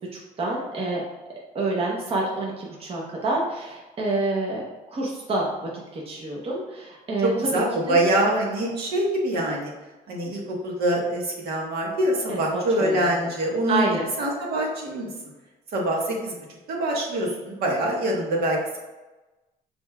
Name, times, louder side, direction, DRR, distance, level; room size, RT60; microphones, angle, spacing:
voice 1, 0.1-1.0 1.5-4.6 4.9-7.5 7.9-8.0 12.3-13.3 13.7-14.1, right 2 dB, 35° right, -3 dB, 0.9 m, -28 dB
voice 2, 7.2-9.7 10.1-13.9 14.2-15.1 15.7-16.4 16.7-18.8, right 1 dB, 65° right, -2 dB, 1.4 m, -24 dB
5.2 x 4.2 x 2.4 m, 1.1 s
cardioid pair, 110°, 17 cm